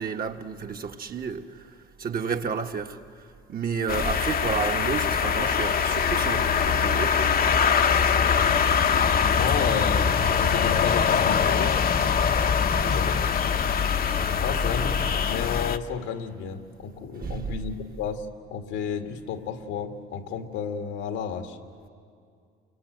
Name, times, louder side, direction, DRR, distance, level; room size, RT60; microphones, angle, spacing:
voice 1, 0.0-3.0 3.5-7.3 17.2-17.7, right 5 dB, 45° right, 1.6 m, -31 dB
sound 1, 3.9-15.8, left 6 dB, 45° left, 1.0 m, -23 dB
voice 2, 9.3-11.8 12.7-13.3 14.3-21.6, left 6 dB, 85° left, 2.1 m, -32 dB
29.5 x 24.0 x 8.0 m
supercardioid pair, 75°, 21 cm